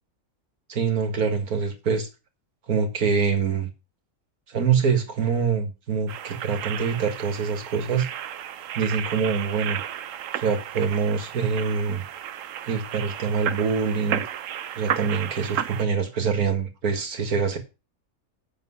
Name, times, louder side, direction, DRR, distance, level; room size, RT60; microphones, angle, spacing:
voice 1, 0.7-2.1 2.7-3.7 4.5-8.1 8.8-9.8 10.3-12.0 12.7-14.2 14.8-17.6, right 6 dB, 90° right, 2.2 m, -25 dB
sound 1, 6.1-15.8, right 10 dB, 70° right, 1.0 m, -33 dB
8.4 x 6.7 x 5.6 m
omnidirectional pair, 1.5 m